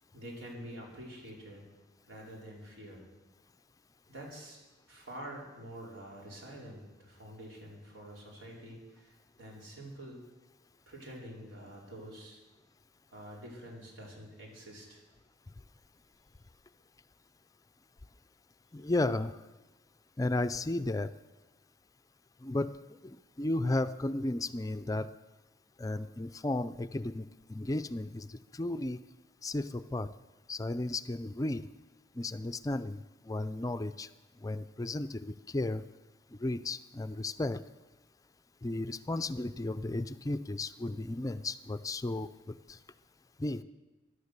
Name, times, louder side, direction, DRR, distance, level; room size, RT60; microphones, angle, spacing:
voice 1, 0.1-1.7 2.1-3.0 4.1-4.6 4.9-10.2 10.9-12.4 13.1-15.0, right 1 dB, 85° right, -2 dB, 4.7 m, -47 dB
voice 2, 18.7-19.3 20.2-21.1 22.4-22.7 23.0-25.1 25.8-28.3 28.5-29.0 29.4-30.1 30.5-31.6 32.2-33.0 33.3-34.1 34.4-35.8 36.4-37.6 38.6-42.8 43.4-43.6, left 2 dB, 20° left, 11 dB, 0.4 m, -34 dB
16.5 x 11.5 x 6.7 m, 1.1 s
head